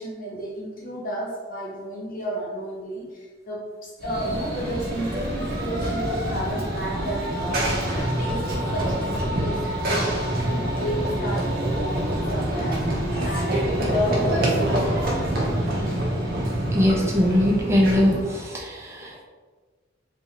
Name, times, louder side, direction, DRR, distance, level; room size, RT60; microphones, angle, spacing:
voice 1, 0.0-15.3, equal, 45° left, -3 dB, 1.0 m, -32 dB
Run / Train, 4.0-18.4, right 1 dB, 55° right, 0.9 m, -26 dB
voice 2, 16.7-19.2, left 1 dB, 15° right, -3 dB, 0.6 m, -21 dB
3.5 x 2.8 x 2.9 m, 1.4 s
head